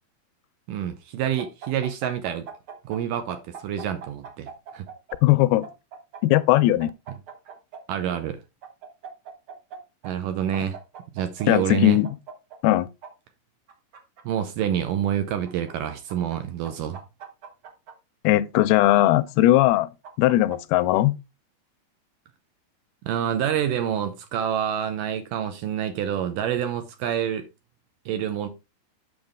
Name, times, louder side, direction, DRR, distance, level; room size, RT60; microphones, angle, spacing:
voice 1, 0.7-2.5 2.8-4.9 7.9-8.4 10.0-10.8 11.1-12.0 14.3-17.0 23.0-27.5 28.1-28.5, right 9 dB, 75° right, 2.1 m, -27 dB
sound 1, 1.4-3.0 3.3-5.2 5.6-7.8 8.6-9.8 10.0-10.1 10.5-11.5 12.0-13.1 13.7-14.7 15.5-16.4 16.6-17.9 18.6-19.5 20.0-21.0, right 7 dB, 55° right, 1.6 m, -41 dB
voice 2, 5.2-5.7 6.2-6.9 11.5-12.1 12.6-12.9 18.2-19.9 20.2-21.2, left 15 dB, 85° left, 2.5 m, -19 dB
8.8 x 6.1 x 3.5 m
omnidirectional pair, 4.4 m